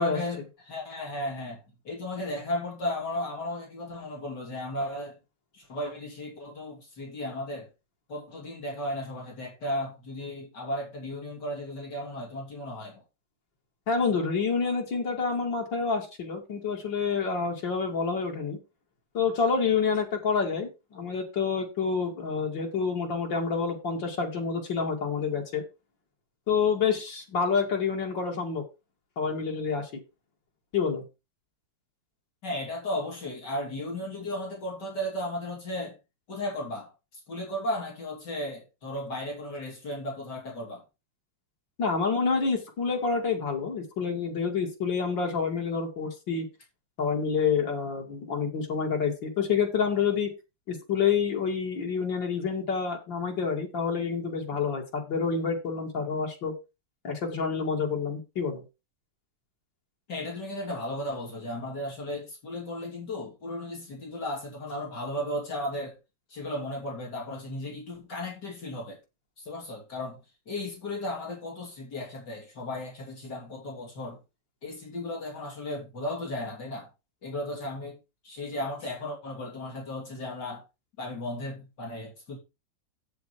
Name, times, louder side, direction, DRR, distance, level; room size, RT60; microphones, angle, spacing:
voice 1, 0.0-5.2 5.5-7.7 8.1-13.0 32.4-36.0 36.3-40.8 60.1-66.0 66.3-69.0 69.4-70.2 70.5-74.2 74.6-76.9 77.2-78.0 78.2-80.6 81.0-82.4, left 1 dB, 65° left, 3.6 m, -35 dB
voice 2, 13.9-18.6 19.1-25.6 26.5-28.6 29.2-30.0 30.7-31.0 41.8-46.5 47.0-50.3 50.7-56.5 57.0-58.6, left 5 dB, 90° left, 3.1 m, -28 dB
7.8 x 6.9 x 4.8 m
omnidirectional pair, 1.9 m